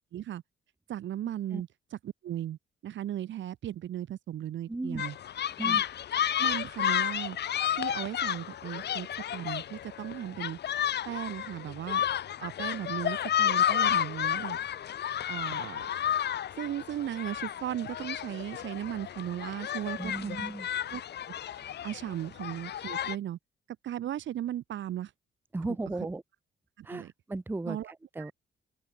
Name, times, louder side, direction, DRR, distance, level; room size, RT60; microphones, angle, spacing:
voice 1, 0.1-0.4 0.9-1.7 2.0-5.2 5.6-5.8 6.4-7.4 7.7-9.1 9.3-10.6 11.0-12.0 12.4-14.6 15.3-15.9 16.6-20.4 20.9-21.0 21.5-23.4 23.8-25.1 26.8-27.1 27.6-27.9 28.2-28.3, right 11 dB, 70° right, 1.8 m, -36 dB
voice 2, 4.7-5.0 5.6-5.8 20.0-20.7 25.5-26.2 26.8-28.3, right 2 dB, 10° right, 0.6 m, -36 dB
sound 1, 5.0-23.2, left 10 dB, 60° left, 1.0 m, -31 dB
open air
cardioid pair, 90°, 20 cm